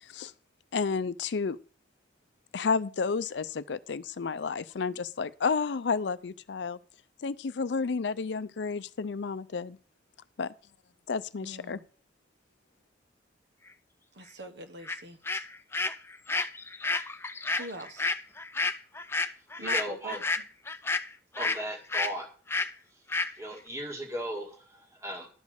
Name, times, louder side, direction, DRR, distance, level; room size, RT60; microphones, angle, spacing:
voice 1, 0.7-1.6 2.5-6.8 7.2-9.8 10.4-10.5 11.1-11.8, left 5 dB, 75° left, 0.5 m, -31 dB
voice 2, 11.4-11.8 14.1-15.2 17.6-18.1 19.6-20.2, right 2 dB, 70° right, 1.2 m, -42 dB
sound 1, 14.9-15.0 15.2-21.6 21.9-22.1 22.5-22.7 23.1-23.3, left 3 dB, 15° left, 0.4 m, -30 dB
voice 3, 19.6-20.2 21.4-22.3 23.4-25.3, right 1 dB, 15° right, 1.8 m, -37 dB
11.5 x 5.2 x 6.4 m
head